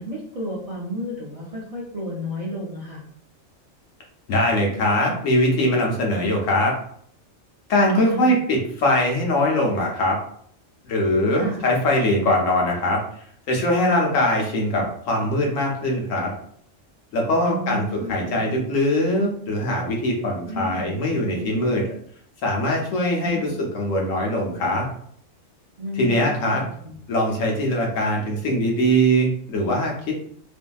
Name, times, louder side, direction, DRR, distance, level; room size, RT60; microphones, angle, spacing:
voice 1, 0.0-3.0 8.1-8.4 11.3-11.7 17.4-18.5 20.5-20.9 23.2-23.5 25.8-27.0, equal, 50° right, -7 dB, 0.4 m, -32 dB
voice 2, 4.3-6.7 7.7-10.2 10.8-13.0 13.5-16.3 17.1-21.9 22.4-24.9 26.0-26.6 27.1-30.1, left 1 dB, 80° left, -1 dB, 1.1 m, -22 dB
2.6 x 2.5 x 2.3 m, 0.63 s
omnidirectional pair, 1.4 m